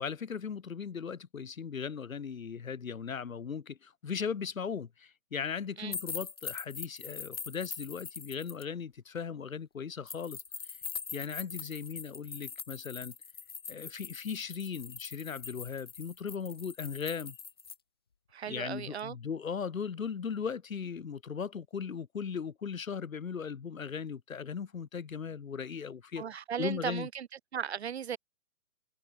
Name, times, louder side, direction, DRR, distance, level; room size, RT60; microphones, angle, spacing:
voice 1, 0.0-10.4 11.1-13.1 13.7-17.4 18.5-26.2 26.6-27.1, left 6 dB, 65° left, 1.3 m, -38 dB
sound 1, 5.9-8.6 10.1-17.8, left 6 dB, 20° left, 0.5 m, -43 dB
voice 2, 18.3-19.2 26.2-27.3 27.5-28.2, right 8 dB, 50° right, 0.8 m, -36 dB
figure-of-eight pair, 130°, 43 cm